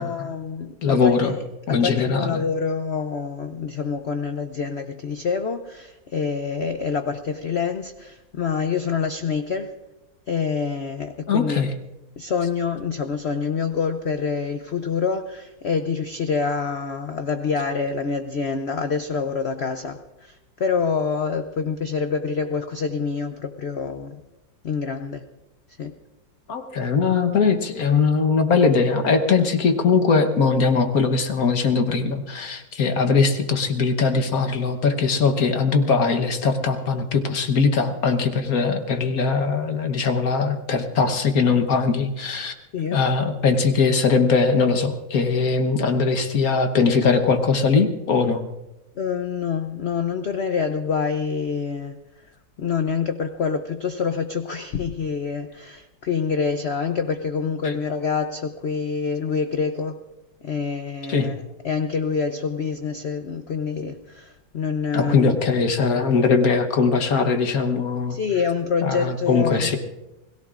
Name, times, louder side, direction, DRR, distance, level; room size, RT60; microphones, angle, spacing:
voice 1, 0.0-1.4 1.7-9.7 10.3-11.7 12.2-24.2 24.6-25.2 25.8-25.9 42.7-43.0 49.0-52.0 52.6-60.0 60.4-65.4 68.1-69.8, left 5 dB, 80° left, 8 dB, 0.5 m, -26 dB
voice 2, 0.8-1.3 1.7-2.4 11.3-11.7 26.5-42.5 42.9-48.4 57.6-57.8 61.1-61.3 64.9-68.2 68.8-69.8, left 4 dB, 55° left, 7 dB, 1.4 m, -21 dB
29.0 x 18.0 x 2.5 m, 1.0 s
omnidirectional pair, 2.0 m